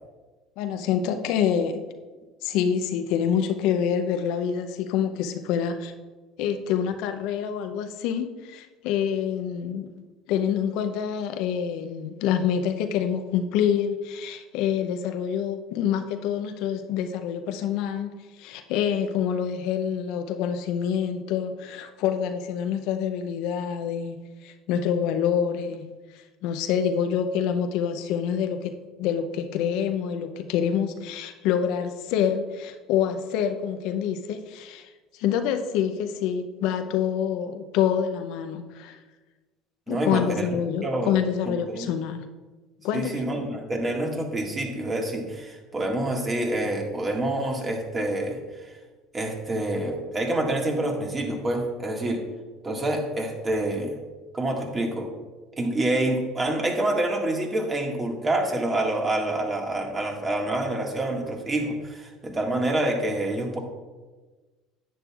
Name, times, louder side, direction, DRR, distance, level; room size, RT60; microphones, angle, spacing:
voice 1, 0.6-1.8 2.4-5.9 6.4-9.9 10.3-18.1 18.4-25.9 26.4-39.0 39.9-42.2 42.8-43.2, left 8 dB, 70° left, 7 dB, 0.6 m, -26 dB
voice 2, 39.9-40.4 40.8-41.1 41.7-41.9 42.9-48.7 49.1-52.3 52.6-54.0 54.3-55.1 55.6-63.6, right 1 dB, 30° right, 1 dB, 1.8 m, -27 dB
10.0 x 8.5 x 2.4 m, 1.3 s
hypercardioid pair, 75°, 0 cm